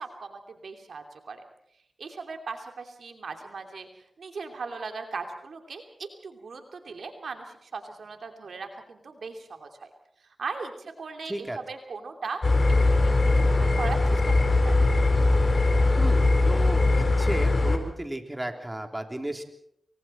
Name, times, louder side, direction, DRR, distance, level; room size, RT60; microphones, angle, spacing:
voice 1, 0.0-1.4 2.0-3.9 4.2-9.9 10.2-12.4 12.8-14.3 14.6-14.9, right 4 dB, 85° right, 5 dB, 2.8 m, -38 dB
voice 2, 11.3-11.6 16.0-19.4, right 1 dB, 20° right, 4 dB, 3.6 m, -34 dB
sound 1, 12.4-17.8, left 2 dB, 55° left, 4.4 m, -21 dB
28.0 x 24.0 x 4.5 m, 0.73 s
cardioid pair, 50°, 0 cm